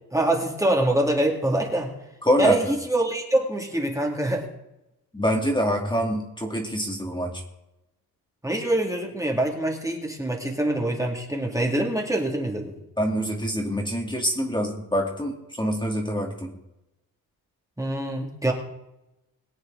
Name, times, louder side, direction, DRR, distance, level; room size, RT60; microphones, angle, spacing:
voice 1, 0.1-1.9 2.4-4.5 8.4-12.7 17.8-18.5, right 1 dB, 10° right, 0 dB, 2.3 m, -25 dB
voice 2, 2.2-2.7 5.1-7.4 13.0-16.5, equal, 10° left, 0 dB, 2.2 m, -25 dB
22.0 x 8.5 x 3.8 m, 0.91 s
cardioid pair, 115°, 37 cm